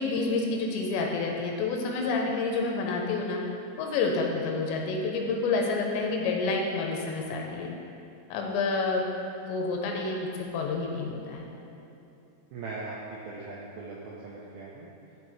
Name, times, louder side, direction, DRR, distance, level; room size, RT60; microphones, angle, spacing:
voice 1, 0.0-3.4 3.8-7.7 8.3-9.1 9.4-10.3 10.5-11.5, left 3 dB, 80° left, 0 dB, 3.1 m, -29 dB
voice 2, 12.5-14.9, right 3 dB, 85° right, -5 dB, 2.1 m, -40 dB
12.5 x 5.8 x 3.2 m, 2.9 s
omnidirectional pair, 5.1 m